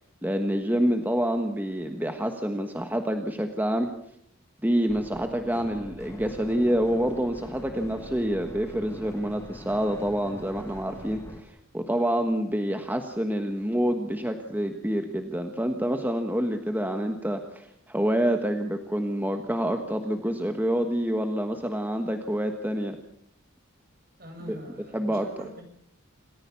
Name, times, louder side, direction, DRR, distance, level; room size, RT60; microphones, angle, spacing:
voice 1, 0.2-3.9 4.6-23.0 24.5-24.6 24.9-25.3, equal, 10° right, 5 dB, 1.3 m, -27 dB
sound 1, 4.9-11.4, left 1 dB, 15° left, 2.0 m, -44 dB
voice 2, 24.2-25.6, equal, 45° right, 4 dB, 7.2 m, -43 dB
27.5 x 15.0 x 7.0 m, 0.70 s
head